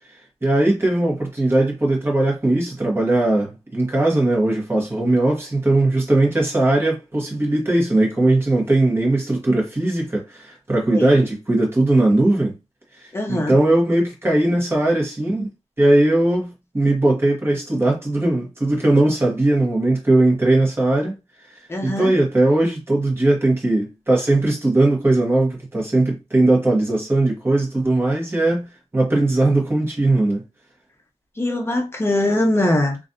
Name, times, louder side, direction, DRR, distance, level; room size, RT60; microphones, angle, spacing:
voice 1, 0.4-12.5 13.3-15.5 15.8-21.1 21.8-30.4, right 2 dB, 20° right, 1.4 m, -19 dB
voice 2, 13.1-13.6 21.7-22.1 31.4-33.0, left 1 dB, 20° left, 0.8 m, -21 dB
3.1 x 2.5 x 2.6 m
wide cardioid pair, 110°, 12 cm